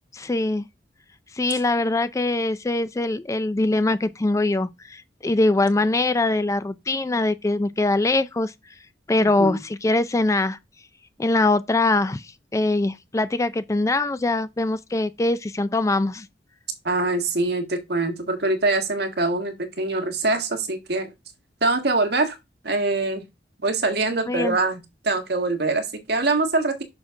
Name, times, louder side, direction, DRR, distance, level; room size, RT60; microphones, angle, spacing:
voice 1, 0.1-0.7 1.3-8.5 9.1-10.6 11.2-16.3 24.3-24.6, left 2 dB, 15° left, 0.3 m, -22 dB
voice 2, 9.2-9.6 16.8-21.1 21.6-22.4 22.6-23.2 23.6-26.8, right 3 dB, 60° right, 1.6 m, -24 dB
6.4 x 6.0 x 3.6 m
head